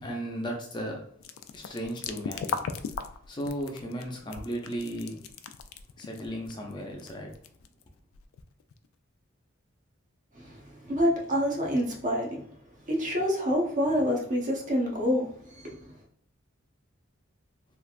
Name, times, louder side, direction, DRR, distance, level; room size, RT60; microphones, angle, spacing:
voice 1, 0.0-1.0 1.5-2.6 3.3-5.2 6.0-7.3, equal, 25° left, 1 dB, 0.5 m, -35 dB
sound 1, 1.2-8.9, left 6 dB, 85° left, 0.3 m, -38 dB
voice 2, 10.3-12.4 12.9-15.3 15.6-15.9, equal, 40° right, -1 dB, 0.7 m, -27 dB
3.2 x 2.4 x 2.4 m, 0.64 s
head